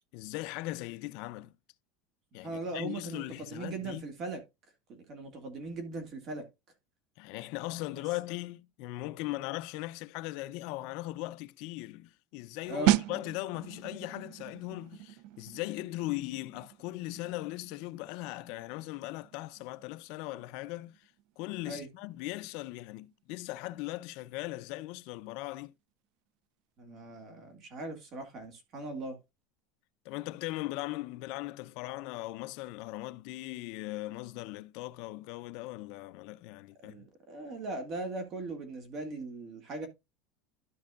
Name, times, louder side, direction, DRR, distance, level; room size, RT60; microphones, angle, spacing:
voice 1, 0.1-1.5 2.3-4.0 7.2-21.1 21.4-25.7 30.0-37.1, left 18 dB, 50° left, 0.5 m, -39 dB
voice 2, 2.4-4.4 4.9-6.5 12.7-13.0 21.7-21.9 26.8-29.2 36.8-39.9, right 2 dB, 30° right, 2.1 m, -39 dB
sound 1, 12.9-23.4 23.6-23.9, right 14 dB, 45° right, 0.4 m, -36 dB
13.0 x 5.3 x 2.4 m
supercardioid pair, 175°, 0 cm